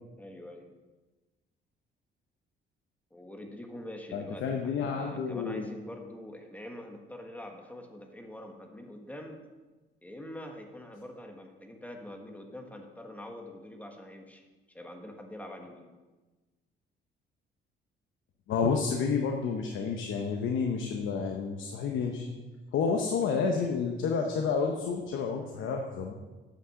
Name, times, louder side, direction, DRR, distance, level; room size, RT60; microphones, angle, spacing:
voice 1, 0.2-0.7 3.1-9.4 10.0-15.9 23.3-23.5, left 1 dB, 5° left, 3 dB, 1.4 m, -45 dB
voice 2, 4.1-5.7 18.5-22.3 22.7-26.1, left 5 dB, 80° left, 3 dB, 0.9 m, -30 dB
8.5 x 6.2 x 6.3 m, 1.2 s
cardioid pair, 90°, 20 cm